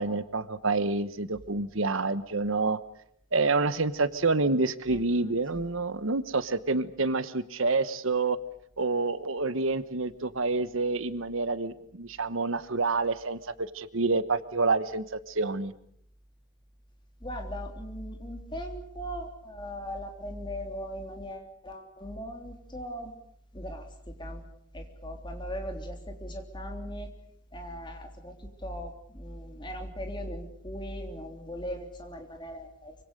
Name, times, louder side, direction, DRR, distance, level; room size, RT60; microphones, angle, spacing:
voice 1, 0.0-2.8 3.3-8.4 8.8-15.7, right 3 dB, 70° right, 14 dB, 1.2 m, -28 dB
voice 2, 17.2-23.1 23.5-24.4 24.7-27.1 27.5-33.0, equal, 20° left, 4 dB, 3.4 m, -39 dB
25.0 x 25.0 x 6.7 m, 0.68 s
head